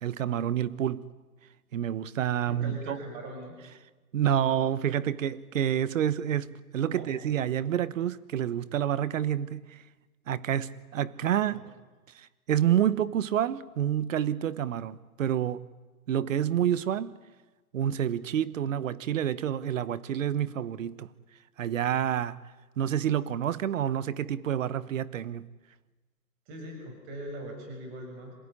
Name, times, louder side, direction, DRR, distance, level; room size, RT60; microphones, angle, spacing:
voice 1, 0.0-1.1 1.7-3.0 4.1-9.8 10.3-11.6 12.1-15.7 16.1-17.1 17.7-21.1 21.6-22.4 22.8-25.5, right 10 dB, 60° right, 1.2 m, -28 dB
voice 2, 2.5-3.5 6.9-7.1 11.4-11.6 26.5-28.3, right 1 dB, 30° right, 7.0 m, -40 dB
27.0 x 16.5 x 10.0 m
hypercardioid pair, 155°, 45 cm